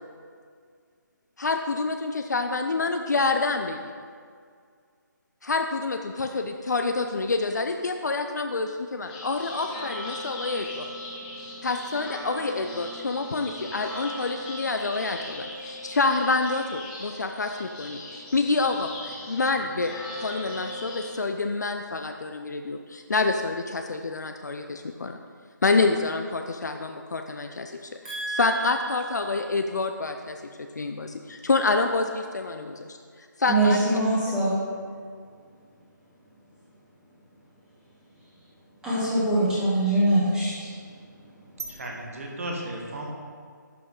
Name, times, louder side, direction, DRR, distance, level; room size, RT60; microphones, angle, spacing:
voice 1, 1.4-3.8 5.4-10.9 11.6-25.2 25.6-28.0 28.3-33.0 33.4-33.8, left 3 dB, 60° left, 5 dB, 0.5 m, -27 dB
sound 1, 9.0-21.1, left 1 dB, 20° left, 1.2 m, -38 dB
voice 2, 28.0-28.7 33.5-34.6 38.8-40.7, right 1 dB, 5° right, -10 dB, 1.7 m, -23 dB
voice 3, 41.6-43.1, right 1 dB, 45° right, 0 dB, 1.6 m, -34 dB
11.0 x 5.9 x 3.7 m, 2.1 s
figure-of-eight pair, 145°, 11 cm